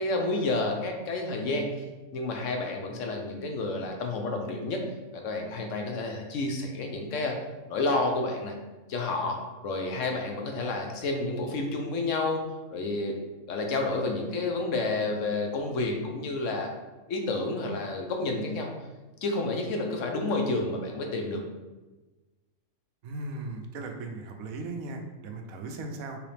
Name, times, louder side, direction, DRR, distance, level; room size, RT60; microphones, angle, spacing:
voice 1, 0.0-1.7 2.1-4.8 5.1-7.4 7.7-8.5 8.9-9.4 9.6-13.2 13.5-16.7 17.1-18.7 19.2-21.4, left 2 dB, 65° left, 2 dB, 1.1 m, -30 dB
voice 2, 23.0-26.2, right 2 dB, 85° right, 4 dB, 1.1 m, -37 dB
4.8 x 3.4 x 3.3 m, 1.1 s
omnidirectional pair, 1.5 m